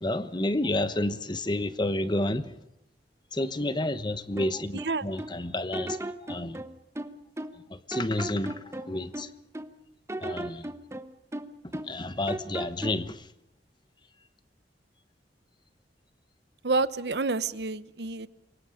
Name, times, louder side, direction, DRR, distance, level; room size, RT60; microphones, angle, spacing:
voice 1, 0.0-2.6 3.3-6.6 7.7-9.3 10.2-10.7 11.7-13.3, left 1 dB, 25° left, 1.1 m, -30 dB
sound 1, 4.4-5.4 5.7-7.6 7.9-9.7 10.1-12.0 12.3-13.1, right 1 dB, 15° right, 1.0 m, -37 dB
voice 2, 4.7-5.1 16.6-18.3, right 3 dB, 70° right, 0.9 m, -28 dB
27.0 x 23.5 x 5.1 m
head